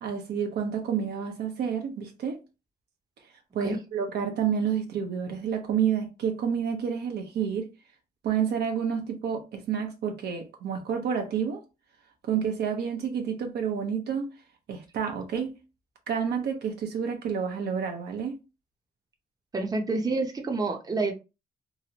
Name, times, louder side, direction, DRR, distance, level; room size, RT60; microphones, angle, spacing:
voice 1, 0.0-2.4 3.5-7.7 8.2-11.6 12.2-14.3 14.7-15.5 16.1-18.4, right 7 dB, 80° right, 0.8 m, -29 dB
voice 2, 19.5-21.1, right 3 dB, 25° right, 0.7 m, -28 dB
2.9 x 2.4 x 2.9 m
cardioid pair, 105°, 17 cm